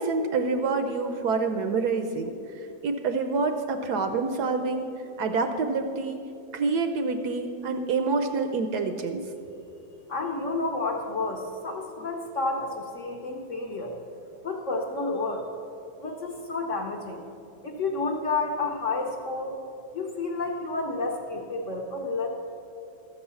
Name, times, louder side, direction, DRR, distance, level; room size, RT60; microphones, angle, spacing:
voice 1, 0.0-4.9 5.2-6.2 6.5-9.2, right 4 dB, 70° right, 7 dB, 1.0 m, -27 dB
voice 2, 10.1-14.0 14.4-15.5 16.0-17.2 17.6-19.6 19.9-22.3, left 3 dB, 55° left, 0 dB, 0.9 m, -30 dB
13.5 x 5.5 x 6.9 m, 2.7 s
omnidirectional pair, 2.0 m